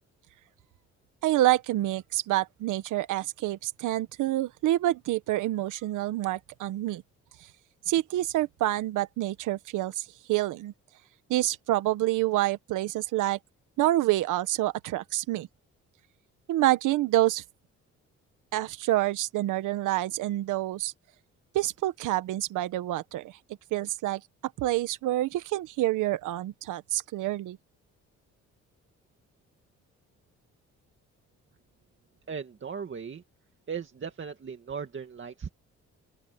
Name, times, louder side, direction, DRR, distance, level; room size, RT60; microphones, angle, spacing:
voice 1, 1.2-7.0 7.9-10.7 11.3-13.4 13.8-15.5 16.5-17.4 18.5-20.9 21.5-23.4 23.7-24.2 24.6-27.6, right 15 dB, 90° right, 1.3 m, -27 dB
voice 2, 32.3-33.2 33.7-35.5, right 6 dB, 40° right, 2.1 m, -37 dB
open air
cardioid pair, 90°, 30 cm